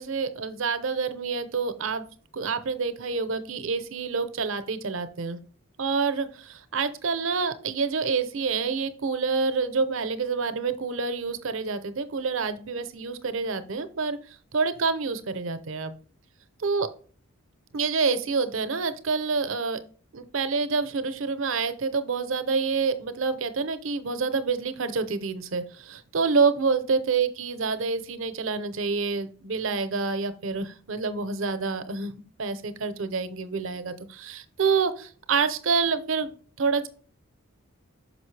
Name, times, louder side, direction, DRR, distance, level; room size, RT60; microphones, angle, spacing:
voice 1, 0.0-2.0 2.3-5.4 5.8-14.2 14.5-15.9 16.6-16.9 17.7-19.8 20.1-32.1 32.4-36.3 36.6-36.9, right 4 dB, 65° right, 11 dB, 0.6 m, -27 dB
6.1 x 5.3 x 3.2 m, 0.43 s
head